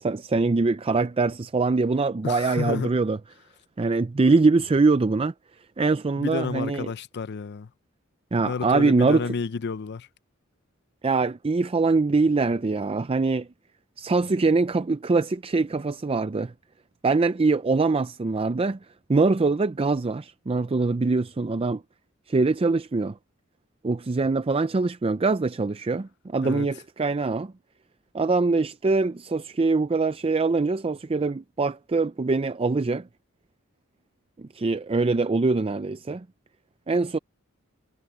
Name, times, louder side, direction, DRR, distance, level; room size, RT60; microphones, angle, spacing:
voice 1, 0.0-3.2 3.8-5.3 5.8-6.9 8.3-9.3 11.0-13.5 14.0-16.5 17.0-18.8 19.1-21.8 22.3-23.2 23.8-27.5 28.1-33.1 34.4-36.3 36.9-37.2, right 3 dB, 25° right, 0.4 m, -23 dB
voice 2, 2.2-2.9 6.2-7.7 8.4-10.1 26.4-26.7, left 5 dB, 55° left, 0.5 m, -30 dB
head